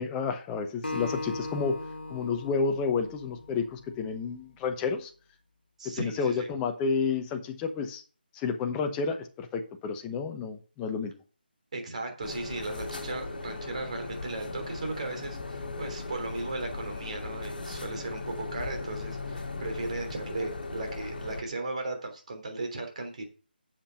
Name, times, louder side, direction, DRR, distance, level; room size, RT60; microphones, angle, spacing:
voice 1, 0.0-1.8 2.1-5.1 6.0-8.0 8.3-11.1, left 5 dB, 10° left, 5 dB, 0.9 m, -30 dB
Acoustic guitar, 0.8-4.1, left 2 dB, 80° left, 1.5 m, -38 dB
voice 2, 5.8-6.5 11.7-23.2, right 2 dB, 40° right, 4 dB, 3.2 m, -36 dB
sound 1, 12.2-21.4, left 3 dB, 60° left, 1.7 m, -38 dB
7.7 x 7.1 x 5.4 m, 0.37 s
figure-of-eight pair, 155°, 6 cm